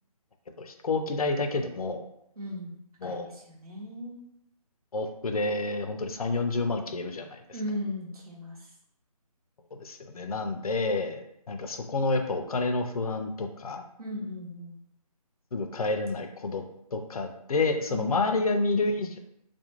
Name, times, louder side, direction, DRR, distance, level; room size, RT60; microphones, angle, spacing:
voice 1, 0.6-2.0 3.0-3.3 4.9-7.4 9.8-11.2 11.5-13.8 15.5-16.6 16.9-19.2, left 3 dB, 65° left, 5 dB, 0.5 m, -29 dB
voice 2, 2.4-2.8 3.0-4.2 7.5-8.7 14.0-14.8 17.9-18.4, left 1 dB, 70° right, -3 dB, 1.0 m, -37 dB
2.4 x 2.2 x 2.9 m, 0.77 s
figure-of-eight pair, 170°, 20 cm